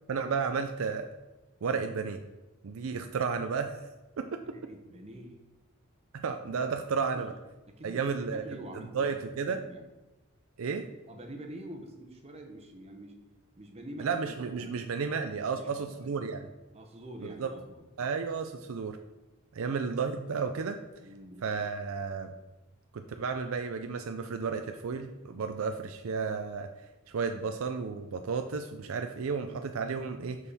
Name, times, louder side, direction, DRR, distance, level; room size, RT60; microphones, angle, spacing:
voice 1, 0.1-1.1 1.6-2.2 2.6-3.8 4.2-4.4 6.1-7.3 7.8-8.4 8.9-9.6 10.6-10.9 14.0-16.4 17.2-17.5 18.0-19.0 19.5-20.8 21.4-22.3 22.9-26.7 27.1-30.4, right 5 dB, 80° right, 6 dB, 0.5 m, -32 dB
voice 2, 4.4-5.4 7.1-7.3 7.7-9.2 9.5-9.9 11.1-13.2 13.6-14.7 15.5-16.3 16.7-17.9 21.0-21.4, right 1 dB, 30° right, 3 dB, 1.0 m, -46 dB
6.2 x 5.6 x 4.1 m, 1.1 s
head